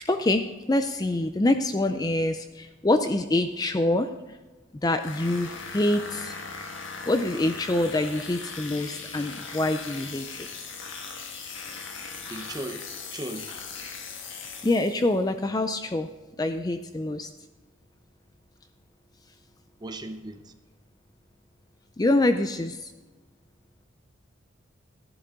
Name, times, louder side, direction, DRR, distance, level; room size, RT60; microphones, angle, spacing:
voice 1, 0.1-4.1 4.8-6.4 7.1-10.5 14.6-16.1 16.4-17.3 22.0-22.9, left 2 dB, 20° left, 8 dB, 0.4 m, -25 dB
sound 1, 5.0-15.2, left 5 dB, 65° left, 1.5 m, -39 dB
voice 2, 12.3-12.9 13.1-13.5 19.8-20.4, right 1 dB, 20° right, 8 dB, 0.7 m, -36 dB
13.5 x 11.0 x 3.7 m, 1.2 s
head